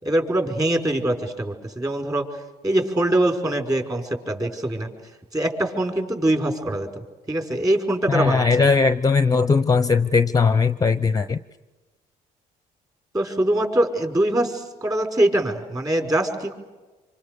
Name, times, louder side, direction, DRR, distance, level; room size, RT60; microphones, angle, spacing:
voice 1, 0.0-4.9 5.3-8.4 13.1-16.5, right 1 dB, 20° right, 4 dB, 5.3 m, -23 dB
voice 2, 8.1-11.4, left 4 dB, 20° left, 12 dB, 0.7 m, -19 dB
27.0 x 26.0 x 6.9 m, 1.2 s
cardioid pair, 110°, 17 cm